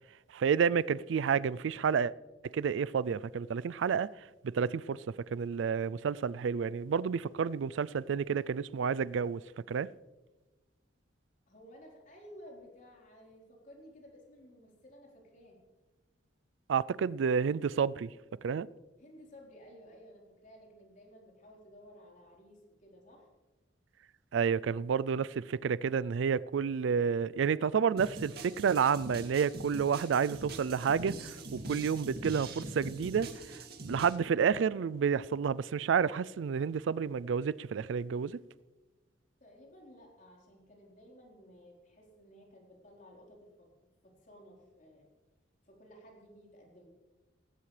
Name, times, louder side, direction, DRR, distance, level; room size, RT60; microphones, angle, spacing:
voice 1, 0.3-2.1 2.4-5.0 5.3-9.4 9.7-9.9 16.7-18.1 18.4-18.7 24.3-38.4, right 6 dB, 80° right, 0.4 m, -30 dB
voice 2, 11.5-15.6 19.0-23.3 39.4-43.7 44.0-45.1 45.6-46.9, equal, 45° left, 4.1 m, -55 dB
sound 1, 28.0-34.2, right 2 dB, 55° right, 2.3 m, -43 dB
18.0 x 16.0 x 3.3 m
head